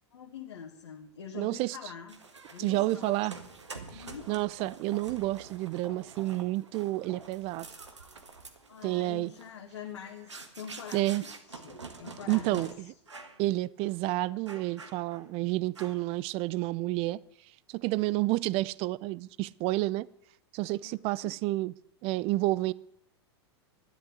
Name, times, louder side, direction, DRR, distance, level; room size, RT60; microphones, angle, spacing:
voice 1, 0.1-2.2 2.5-3.1 3.9-4.3 8.7-13.2 20.8-21.3, left 8 dB, 75° left, 1.7 m, -45 dB
voice 2, 1.3-1.8 2.6-3.3 4.3-7.7 8.8-9.3 10.9-11.2 12.3-12.9 13.4-17.2 17.7-20.1 20.5-21.7 22.0-22.7, right 19 dB, 40° right, 0.5 m, -30 dB
sound 1, 2.1-12.7 13.1-13.4 13.8-13.9 14.5-15.3 15.8-16.2, right 4 dB, 90° right, 1.7 m, -47 dB
12.5 x 10.5 x 8.1 m
hypercardioid pair, 95°, 15 cm